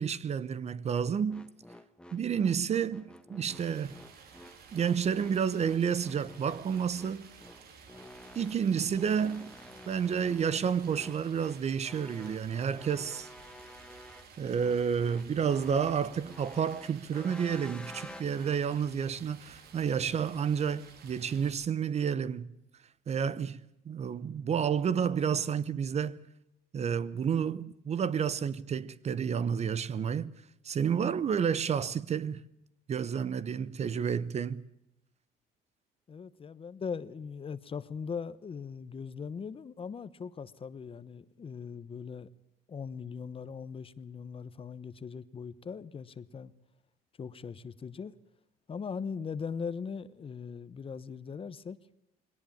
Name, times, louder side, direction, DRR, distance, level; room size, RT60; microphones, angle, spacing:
voice 1, 0.0-1.4 2.1-3.9 4.7-7.3 8.3-9.5 9.9-13.3 14.4-22.5 23.1-26.2 26.7-30.3 30.6-32.4 32.9-34.6, right 7 dB, 40° right, 0.8 m, -30 dB
sound 1, 1.3-18.6, left 1 dB, 5° left, 1.3 m, -50 dB
Stream, 3.5-21.5, right 6 dB, 65° right, 3.1 m, -54 dB
voice 2, 36.1-42.3 42.7-46.5 47.2-48.1 48.7-51.8, left 6 dB, 35° left, 1.0 m, -40 dB
20.5 x 18.0 x 8.6 m
cardioid pair, 110°, 17 cm